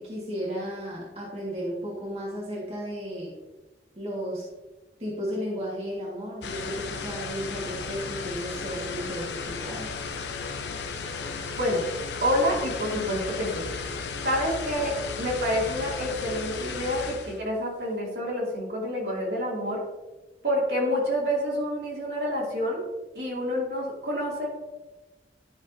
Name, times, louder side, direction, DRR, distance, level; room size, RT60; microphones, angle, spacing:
voice 1, 0.0-3.3 4.0-4.4 5.0-9.9, equal, 35° right, -5 dB, 1.8 m, -34 dB
sound 1, 6.4-17.4, left 4 dB, 80° left, 0.8 m, -34 dB
voice 2, 11.6-11.9 12.2-13.7 14.2-19.8 20.4-22.8 23.1-24.5, equal, 70° right, -4 dB, 2.6 m, -28 dB
11.5 x 6.1 x 2.7 m, 1.1 s
head